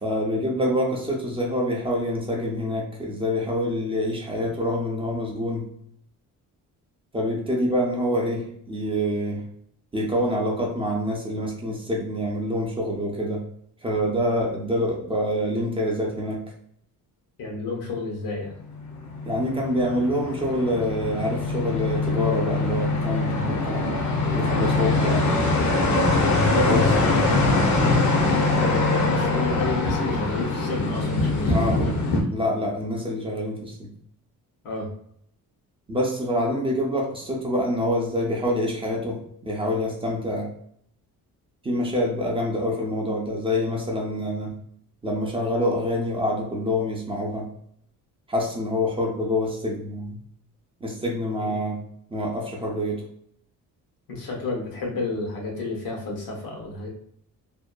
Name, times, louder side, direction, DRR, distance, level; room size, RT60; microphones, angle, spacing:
voice 1, 0.0-5.7 7.1-9.4 9.9-13.4 13.8-16.4 19.2-24.0 24.3-25.2 26.7-26.9 31.2-31.9 32.3-33.9 35.9-40.5 41.6-44.5 45.0-47.5 48.3-50.2 50.8-51.8 52.1-53.0, equal, 15° right, -2 dB, 0.4 m, -26 dB
voice 2, 17.4-18.5 26.4-32.1 34.6-34.9 51.4-51.6 54.1-56.9, left 3 dB, 85° left, 0 dB, 0.9 m, -31 dB
sound 1, 18.8-32.2, left 2 dB, 60° left, 0.6 m, -23 dB
2.7 x 2.2 x 2.2 m, 0.67 s
cardioid pair, 150°, 34 cm